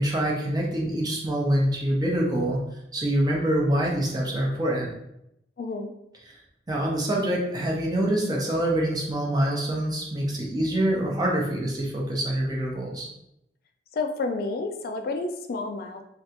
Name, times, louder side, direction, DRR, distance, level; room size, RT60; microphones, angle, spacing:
voice 1, 0.0-2.6 2.9-4.9 6.7-13.1, right 1 dB, 20° right, -2 dB, 0.6 m, -25 dB
voice 2, 5.6-5.9 13.9-16.0, left 3 dB, 55° left, 5 dB, 0.3 m, -30 dB
3.3 x 2.5 x 2.8 m, 0.80 s
head